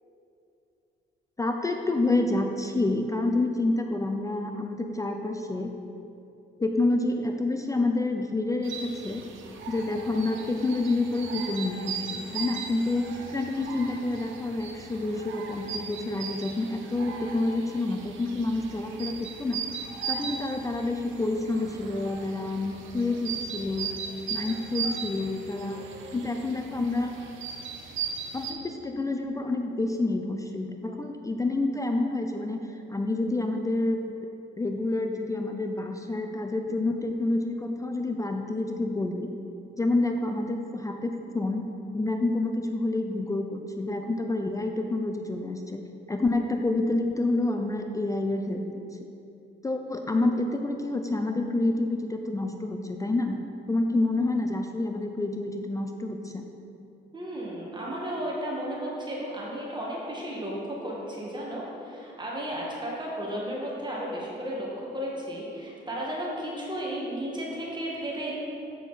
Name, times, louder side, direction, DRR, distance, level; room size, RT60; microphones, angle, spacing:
voice 1, 1.4-5.7 6.6-9.2 9.7-19.6 20.1-23.9 24.3-25.8 26.1-27.1 28.3-32.6 32.9-34.0 34.6-39.3 39.8-41.6 41.9-45.8 46.1-48.8 49.6-53.4 53.7-56.4, left 2 dB, 15° left, 4 dB, 0.4 m, -28 dB
sound 1, 8.6-28.5, right 6 dB, 80° right, 0.8 m, -38 dB
voice 2, 57.1-68.3, equal, 20° right, -4 dB, 1.5 m, -34 dB
7.0 x 6.2 x 4.0 m, 2.8 s
cardioid pair, 90°, 20 cm